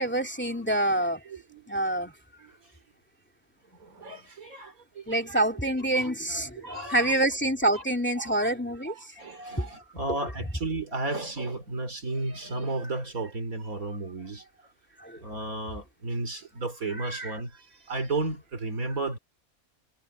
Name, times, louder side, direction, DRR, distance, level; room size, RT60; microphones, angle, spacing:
voice 1, 0.0-1.2 1.7-2.1 5.1-9.1 15.0-15.2 17.0-17.3, right 1 dB, 5° left, 2.5 m, -27 dB
voice 2, 1.3-1.6 4.0-4.7 5.1-5.4 5.9-6.1 6.6-7.2 7.7-7.8 8.2-8.5 8.9-14.4 15.2-17.5 17.9-19.2, right 2 dB, 70° right, 3.9 m, -33 dB
omnidirectional pair, 1.5 m